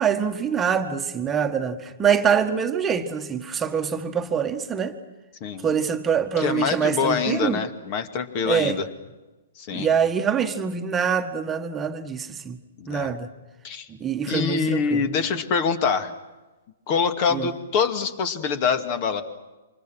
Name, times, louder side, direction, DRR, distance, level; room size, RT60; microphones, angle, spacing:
voice 1, 0.0-4.9 5.6-7.6 8.4-8.8 9.7-12.6 12.9-13.3 14.0-15.0 17.3-17.5, right 7 dB, 15° right, 6 dB, 1.6 m, -24 dB
voice 2, 6.4-8.9 9.6-9.9 12.8-13.2 13.6-13.9 14.2-16.1 16.9-19.2, left 6 dB, 40° left, 9 dB, 2.3 m, -25 dB
29.0 x 26.0 x 6.2 m, 1.1 s
figure-of-eight pair, 115°, 0 cm